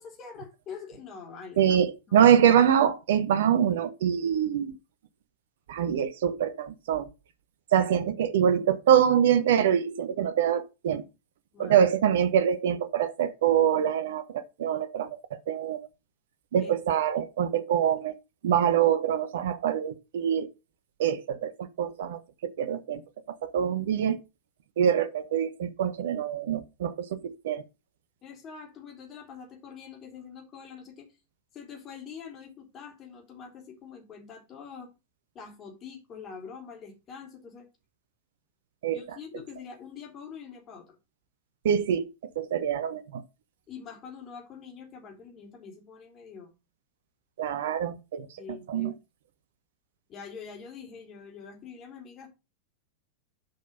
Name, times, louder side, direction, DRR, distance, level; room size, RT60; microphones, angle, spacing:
voice 1, 0.0-1.8 2.1-2.3 3.1-3.2 11.5-11.8 16.6-16.7 28.2-31.1 31.5-34.9 35.3-37.7 38.9-41.0 43.7-46.5 48.4-48.9 50.1-52.3, left 6 dB, 30° left, 3.2 m, -44 dB
voice 2, 1.6-4.7 5.7-7.1 7.7-11.0 11.6-15.2 15.5-15.9 16.5-18.1 18.4-20.5 21.0-21.5 21.8-23.0 23.3-24.2 24.8-27.6 38.8-39.0 41.6-42.1 42.4-43.2 47.4-48.3 48.7-48.9, right 9 dB, 60° right, 0.8 m, -24 dB
7.8 x 5.3 x 5.3 m
figure-of-eight pair, 90°, 0 cm